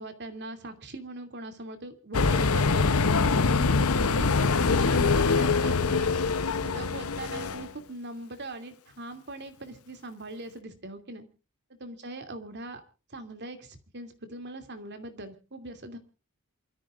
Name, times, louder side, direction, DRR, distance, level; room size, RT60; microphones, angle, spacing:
voice 1, 0.0-2.9 3.5-6.1 6.6-11.3 11.7-12.8 13.1-16.0, right 2 dB, 50° right, 7 dB, 2.7 m, -41 dB
sound 1, 2.1-7.7, left 4 dB, 80° left, 0.8 m, -24 dB
27.5 x 14.0 x 2.5 m, 0.35 s
head